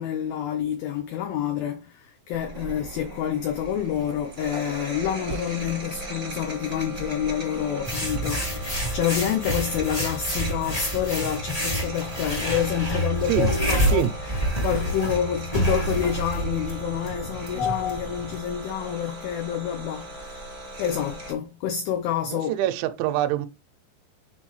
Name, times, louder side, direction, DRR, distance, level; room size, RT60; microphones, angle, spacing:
voice 1, 0.0-20.5 20.8-22.5, left 9 dB, 85° left, 2.1 m, -28 dB
sound 1, 2.3-21.3, right 2 dB, 45° right, 1.2 m, -38 dB
sound 2, 7.8-18.4, right 1 dB, 35° left, 0.6 m, -28 dB
voice 2, 22.3-23.5, right 12 dB, 85° right, 2.8 m, -24 dB
9.5 x 3.9 x 3.1 m
omnidirectional pair, 5.3 m